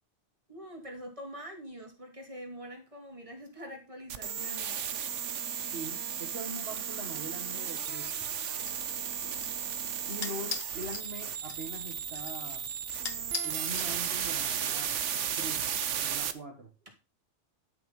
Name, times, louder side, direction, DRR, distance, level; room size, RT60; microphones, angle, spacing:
voice 1, 0.5-4.8 9.2-9.5, equal, 25° right, 3.1 m, -45 dB
sound 1, 4.1-16.3, right 8 dB, 70° right, 1.2 m, -34 dB
voice 2, 5.7-8.3 10.1-12.6 13.4-14.9 15.4-15.7 16.0-16.7, right 1 dB, 50° right, 2.1 m, -42 dB
sound 2, 8.0-14.5, left 5 dB, 55° left, 1.4 m, -44 dB
11.5 x 6.5 x 5.5 m
omnidirectional pair, 1.3 m